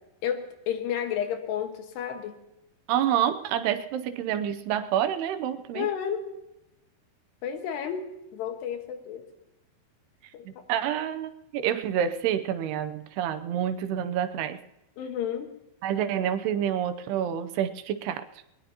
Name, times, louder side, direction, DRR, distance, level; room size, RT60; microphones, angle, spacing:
voice 1, 0.2-2.3 5.7-6.2 7.4-8.0 8.3-9.2 10.3-10.5 15.0-15.5, left 8 dB, 85° left, 5 dB, 3.6 m, -31 dB
voice 2, 2.9-5.9 10.5-14.6 15.8-18.3, right 10 dB, 80° right, 10 dB, 2.8 m, -28 dB
20.5 x 20.0 x 2.9 m, 0.91 s
omnidirectional pair, 4.7 m